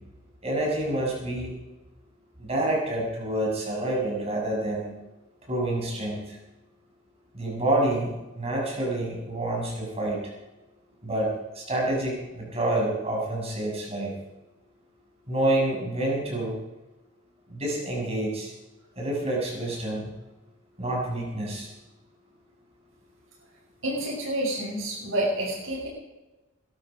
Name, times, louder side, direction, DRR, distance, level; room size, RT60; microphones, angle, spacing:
voice 1, 0.4-1.5 2.4-4.9 5.5-6.4 7.3-10.2 11.0-14.1 15.3-16.6 17.5-18.5 19.0-20.1 20.8-21.7, right 1 dB, 30° right, -2 dB, 6.7 m, -28 dB
voice 2, 23.8-25.9, right 1 dB, 75° right, -7 dB, 6.5 m, -28 dB
21.0 x 13.0 x 5.2 m, 1.1 s
head